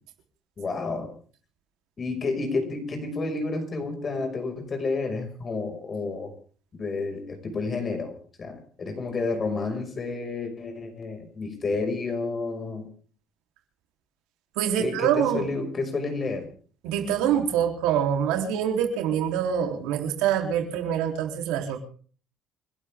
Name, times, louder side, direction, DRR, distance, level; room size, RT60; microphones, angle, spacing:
voice 1, 0.6-1.1 2.0-6.3 6.7-8.1 8.4-12.9 14.8-16.5, left 3 dB, 35° left, 5 dB, 5.7 m, -30 dB
voice 2, 14.5-15.5 16.8-21.8, right 9 dB, 85° right, 3 dB, 3.5 m, -25 dB
29.5 x 12.5 x 3.7 m, 0.43 s
cardioid pair, 90°, 0 cm